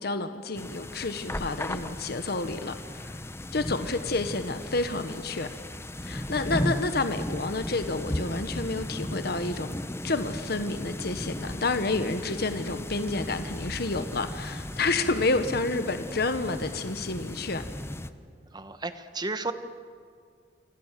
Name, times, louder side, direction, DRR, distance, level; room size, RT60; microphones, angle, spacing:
voice 1, 0.0-3.2 3.5-5.5 6.0-9.8 10.0-17.6, left 3 dB, 60° left, 9 dB, 1.2 m, -29 dB
sound 1, 0.6-18.1, left 1 dB, 15° left, 0.9 m, -36 dB
voice 2, 18.5-19.5, right 3 dB, 25° right, 10 dB, 1.3 m, -33 dB
27.5 x 26.5 x 7.6 m, 2.1 s
head